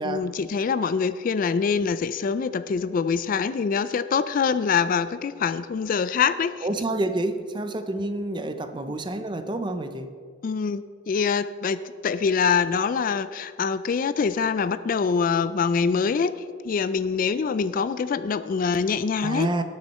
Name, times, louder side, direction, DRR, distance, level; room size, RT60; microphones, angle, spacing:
voice 1, 0.0-6.7 10.4-16.3 16.6-19.5, left 5 dB, 45° left, 14 dB, 0.3 m, -24 dB
voice 2, 6.6-10.1 19.2-19.6, right 2 dB, 25° right, 9 dB, 0.6 m, -28 dB
18.0 x 6.4 x 4.2 m, 2.1 s
head